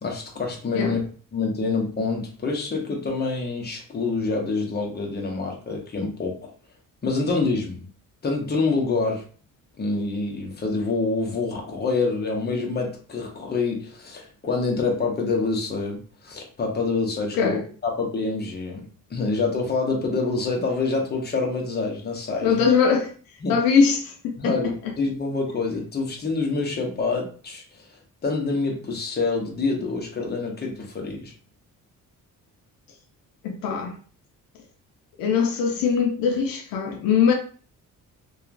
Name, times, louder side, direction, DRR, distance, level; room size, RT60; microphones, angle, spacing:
voice 1, 0.0-1.0 1.3-6.5 7.0-7.9 8.2-9.2 9.8-17.6 17.8-22.5 23.4-23.6 24.4-27.9 28.2-31.3, left 3 dB, 30° left, 0.9 m, -26 dB
voice 2, 22.4-23.1 23.5-24.7 33.4-34.0 35.2-37.3, left 6 dB, 90° left, 0.6 m, -21 dB
2.8 x 2.4 x 2.5 m
cardioid pair, 105°, 34 cm